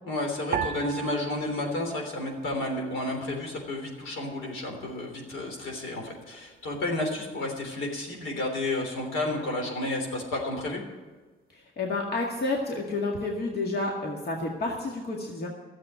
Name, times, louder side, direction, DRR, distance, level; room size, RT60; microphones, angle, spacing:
voice 1, 0.1-10.8, left 2 dB, 80° left, 1 dB, 3.5 m, -31 dB
sound 1, 0.5-3.0 3.3-4.2 4.8-5.2, right 8 dB, 50° right, 0.7 m, -37 dB
voice 2, 11.5-15.5, left 2 dB, 50° left, -1 dB, 2.0 m, -30 dB
13.0 x 7.7 x 9.4 m, 1.3 s
cardioid pair, 90°, 20 cm